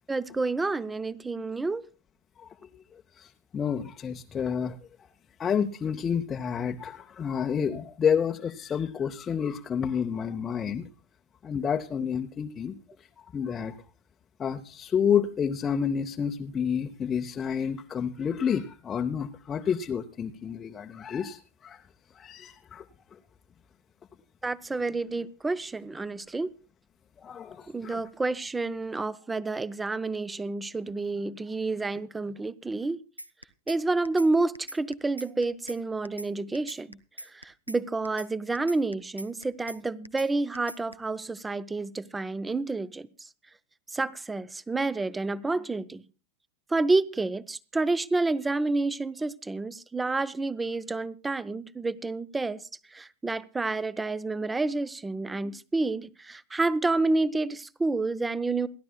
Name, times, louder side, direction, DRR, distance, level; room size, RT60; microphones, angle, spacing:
voice 1, 0.1-1.8 24.4-26.5 27.7-33.0 33.7-37.0 37.3-43.1 43.9-46.0 46.7-52.6 52.9-58.7, right 3 dB, 10° right, 0.6 m, -29 dB
voice 2, 3.2-4.8 5.4-10.9 11.4-12.7 13.3-13.7 14.4-21.8 22.2-22.8 27.2-28.0, left 7 dB, 20° left, 0.7 m, -29 dB
sound 1, 33.2-33.8 34.0-34.3 34.5-35.8 36.0-36.3 36.5-37.8 38.0-38.3 38.5-39.8 40.0-40.3 40.5-40.9, right 1 dB, 85° right, 0.6 m, -41 dB
28.0 x 11.5 x 2.3 m
figure-of-eight pair, 90°, 0 cm